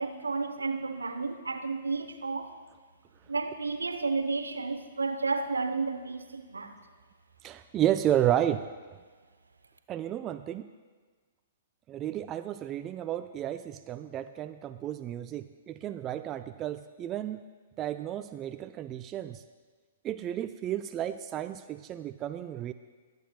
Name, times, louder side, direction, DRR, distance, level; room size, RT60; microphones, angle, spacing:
voice 1, 0.0-2.5 3.3-6.7, right 4 dB, 80° right, 8 dB, 0.8 m, -32 dB
voice 2, 7.4-8.7 9.9-10.7 11.9-17.4 17.8-19.4 20.0-22.7, right 11 dB, 25° right, 9 dB, 0.3 m, -32 dB
21.0 x 8.0 x 2.3 m, 1.5 s
figure-of-eight pair, 115°, 0 cm